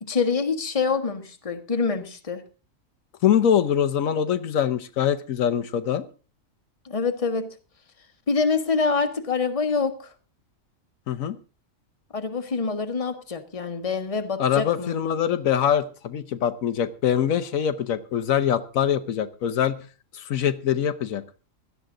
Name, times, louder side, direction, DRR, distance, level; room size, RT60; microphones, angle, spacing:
voice 1, 0.0-2.4 6.8-7.5 8.3-10.1 12.1-15.0, left 4 dB, 25° left, 7 dB, 1.3 m, -26 dB
voice 2, 3.2-6.0 11.1-11.4 14.4-19.8 20.1-21.2, left 9 dB, 80° left, 10 dB, 1.2 m, -23 dB
17.0 x 12.5 x 3.8 m, 0.35 s
omnidirectional pair, 1.4 m